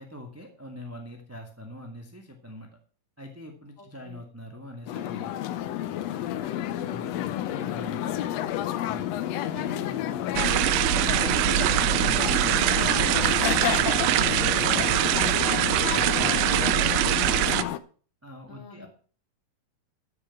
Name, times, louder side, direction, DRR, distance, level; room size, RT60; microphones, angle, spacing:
voice 1, 0.0-2.7 3.2-5.3 6.8-8.1 8.9-10.6 11.0-15.1 15.5-17.6 18.2-18.9, left 1 dB, 5° right, 2 dB, 1.5 m, -43 dB
voice 2, 3.8-4.2 6.4-6.7 18.5-18.9, left 3 dB, 25° left, 3 dB, 2.9 m, -49 dB
sound 1, 4.9-17.8, left 12 dB, 70° left, 1.8 m, -30 dB
sound 2, 10.4-17.6, right 14 dB, 85° right, 2.1 m, -23 dB
13.5 x 7.0 x 5.9 m, 0.41 s
omnidirectional pair, 3.3 m